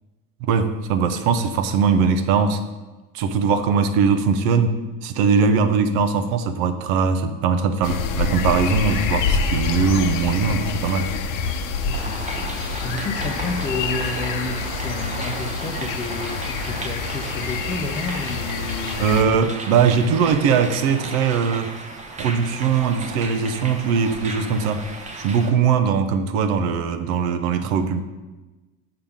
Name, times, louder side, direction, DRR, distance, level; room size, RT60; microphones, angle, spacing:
voice 1, 0.4-2.6 3.1-11.1 19.0-21.7 22.2-24.8 25.2-28.0, right 6 dB, 80° right, 9 dB, 0.8 m, -20 dB
sound 1, 7.8-19.2, left 5 dB, 55° left, 0.8 m, -26 dB
voice 2, 11.9-12.3 12.8-19.4, left 2 dB, 15° left, 0 dB, 0.5 m, -31 dB
sound 2, 11.9-25.5, right 2 dB, 20° right, 0.7 m, -34 dB
6.6 x 5.8 x 3.6 m, 1.1 s
supercardioid pair, 115°, 40 cm